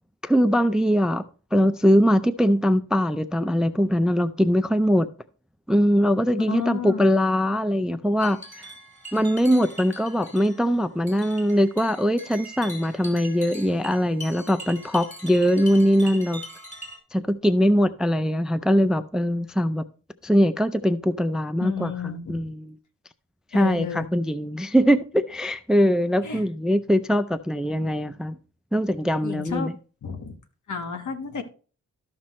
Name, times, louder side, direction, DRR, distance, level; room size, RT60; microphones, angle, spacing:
voice 1, 0.2-1.2 1.5-5.1 5.7-8.7 9.1-16.4 17.1-19.8 20.2-22.7 23.5-28.4 28.7-29.7, equal, ahead, 0.4 m, -22 dB
voice 2, 6.5-7.2 21.6-22.4 23.5-24.1 26.2-26.4 29.2-29.7 30.0-30.4 30.7-31.4, left 6 dB, 65° left, 1.4 m, -31 dB
sound 1, 8.2-17.0, equal, 20° left, 2.9 m, -42 dB
13.0 x 5.9 x 3.1 m
wide cardioid pair, 105°, 32 cm